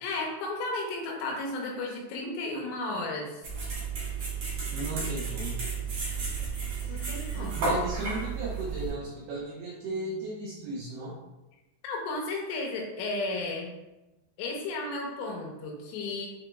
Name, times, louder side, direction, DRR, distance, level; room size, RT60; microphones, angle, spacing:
voice 1, 0.0-3.4 6.9-7.5 11.8-13.7 14.4-16.3, left 2 dB, 85° left, 0 dB, 3.2 m, -33 dB
sound 1, 3.4-8.9, right 4 dB, 70° right, 1.4 m, -32 dB
voice 2, 4.7-5.6 7.3-11.2, right 2 dB, 85° right, -5 dB, 2.2 m, -35 dB
7.0 x 3.0 x 2.3 m, 1.0 s
omnidirectional pair, 5.4 m